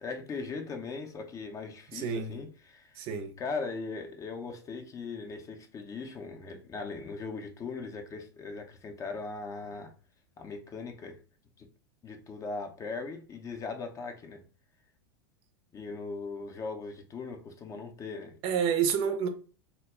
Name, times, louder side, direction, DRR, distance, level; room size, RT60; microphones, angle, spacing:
voice 1, 0.0-2.5 2.7-3.0 3.4-9.9 10.4-11.2 11.6-11.7 12.0-14.4 15.7-18.4, left 4 dB, 25° left, 0.5 m, -39 dB
voice 2, 1.9-2.4 3.0-3.3 18.4-19.3, right 7 dB, 45° right, 0.5 m, -29 dB
2.1 x 2.0 x 3.4 m
hypercardioid pair, 95°, 13 cm